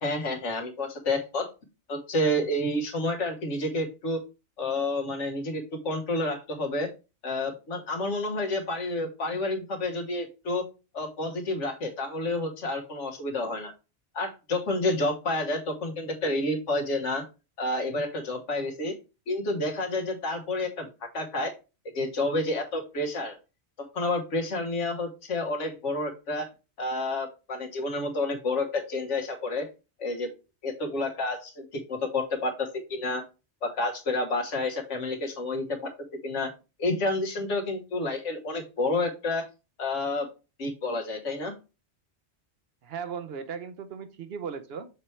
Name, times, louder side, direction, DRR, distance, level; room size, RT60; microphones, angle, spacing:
voice 1, 0.0-1.5 1.9-4.2 4.6-6.9 7.2-10.7 10.9-13.7 14.1-17.2 17.6-19.0 19.3-21.5 21.9-23.4 23.9-26.5 26.8-29.7 30.0-30.3 30.6-33.2 33.6-35.9 36.2-36.5 36.8-39.5 39.8-40.3 40.6-41.5, left 2 dB, 85° left, 1.6 m, -29 dB
voice 2, 42.8-44.9, right 6 dB, 60° right, 0.9 m, -37 dB
6.7 x 4.4 x 3.2 m
omnidirectional pair, 1.2 m